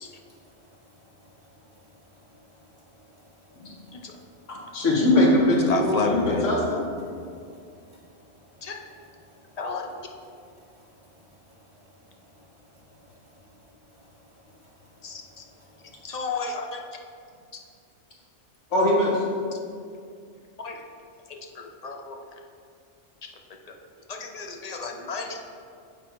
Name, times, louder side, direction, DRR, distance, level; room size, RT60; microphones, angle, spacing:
voice 1, 0.0-4.8 7.1-7.8 9.3-9.6 10.4-16.0, equal, 25° left, -6 dB, 1.2 m, -57 dB
voice 2, 4.5-6.8 18.7-19.1, left 1 dB, 85° left, -3 dB, 1.6 m, -21 dB
voice 3, 5.7-6.5 8.6-8.8 9.6-9.9 15.0-15.4 16.0-16.8 20.6-20.8 21.3-22.2 24.1-25.4, left 3 dB, 45° left, 2 dB, 0.6 m, -31 dB
7.9 x 4.2 x 4.6 m, 2.3 s
omnidirectional pair, 1.2 m